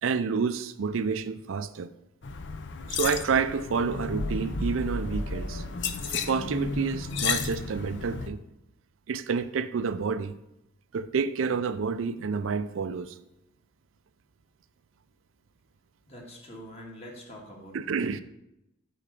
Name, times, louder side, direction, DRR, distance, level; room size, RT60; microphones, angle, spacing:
voice 1, 0.0-1.9 2.9-5.6 6.1-8.4 9.1-10.4 10.9-13.1 17.7-18.2, right 5 dB, 80° right, 0.4 m, -29 dB
sound 1, 2.2-8.3, left 4 dB, 65° left, 0.7 m, -32 dB
voice 2, 16.1-18.2, equal, 35° left, 1.8 m, -45 dB
8.3 x 3.9 x 6.7 m
head